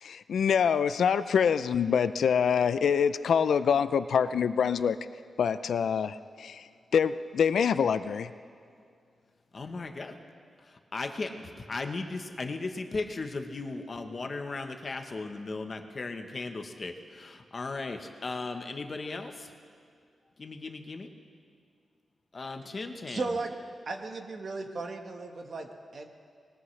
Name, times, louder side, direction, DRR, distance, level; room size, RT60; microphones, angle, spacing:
voice 1, 0.0-5.0 5.4-8.3, left 7 dB, 75° left, 13 dB, 0.4 m, -25 dB
voice 2, 9.5-10.1 10.9-19.5 20.4-21.1 22.3-23.2, left 3 dB, 35° left, 6 dB, 1.0 m, -36 dB
voice 3, 23.1-23.5 23.8-26.1, right 3 dB, 45° right, 4 dB, 1.3 m, -35 dB
21.0 x 20.0 x 3.2 m, 2.3 s
wide cardioid pair, 170°, 0 cm